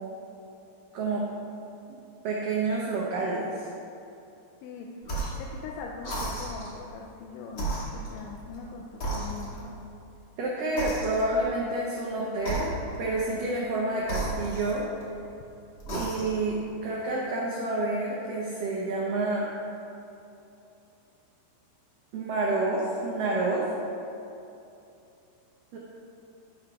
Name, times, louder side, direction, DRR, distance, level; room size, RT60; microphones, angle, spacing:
voice 1, 0.9-1.3 1.9-2.0 2.2-3.5 10.4-12.7 13.0-14.8 15.9-19.5 22.1-23.6 25.7-25.8, right 2 dB, 85° right, -4 dB, 1.9 m, -28 dB
sound 1, 5.0-5.5 6.0-6.8 7.5-8.6 9.0-9.8 10.8-11.5 12.4-13.1 14.0-15.2 15.8-16.5, right 2 dB, 55° left, 1.4 m, -34 dB
voice 2, 5.2-9.8, left 5 dB, 90° left, -1 dB, 3.0 m, -41 dB
13.0 x 9.7 x 2.4 m, 2.7 s
omnidirectional pair, 5.3 m